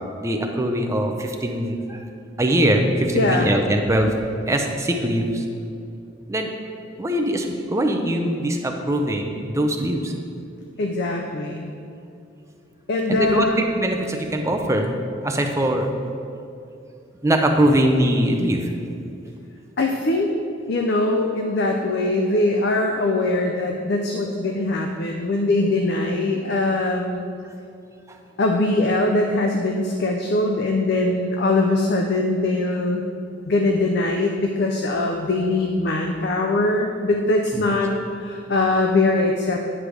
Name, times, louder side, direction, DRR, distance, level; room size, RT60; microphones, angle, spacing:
voice 1, 0.2-2.0 2.4-4.1 4.5-5.4 6.3-6.5 7.0-10.1 13.1-14.9 15.2-15.9 17.2-18.7 37.5-37.6, right 1 dB, 15° right, 3 dB, 0.5 m, -22 dB
voice 2, 3.1-3.5 10.8-11.7 12.9-13.6 19.8-20.3 20.7-27.2 28.4-33.0 33.4-37.9 38.2-39.6, left 2 dB, 55° left, 2 dB, 0.5 m, -22 dB
9.7 x 3.3 x 6.2 m, 2.5 s
head